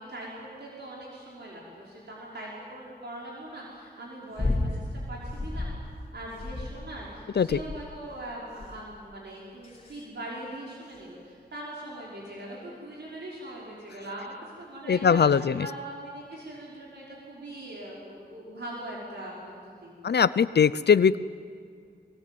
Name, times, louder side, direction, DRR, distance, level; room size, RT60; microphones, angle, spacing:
voice 1, 0.0-5.7 6.1-19.5 19.8-20.0, right 1 dB, 75° right, -5 dB, 5.6 m, -41 dB
sound 1, 4.4-4.8 5.2-5.8 6.4-7.0 7.5-8.0 8.6-8.9 9.6-10.0 10.9-11.0, left 2 dB, 35° left, 3.0 m, -31 dB
voice 2, 14.9-15.7 20.0-21.2, left 6 dB, 70° left, 15 dB, 0.6 m, -21 dB
23.5 x 22.5 x 9.4 m, 2.2 s
wide cardioid pair, 100°, 18 cm